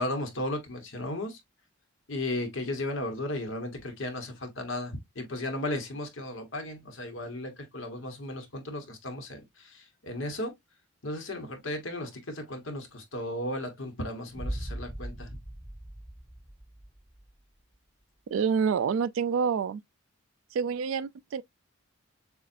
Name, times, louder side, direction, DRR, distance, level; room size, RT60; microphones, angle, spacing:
voice 1, 0.0-1.4 2.1-10.5 11.0-15.3, left 1 dB, 65° left, 1.3 m, -35 dB
Boom, 14.3-17.3, right 1 dB, 10° right, 1.6 m, -39 dB
voice 2, 18.3-19.8 20.5-21.4, right 6 dB, 70° right, 0.3 m, -27 dB
7.1 x 2.4 x 2.6 m
head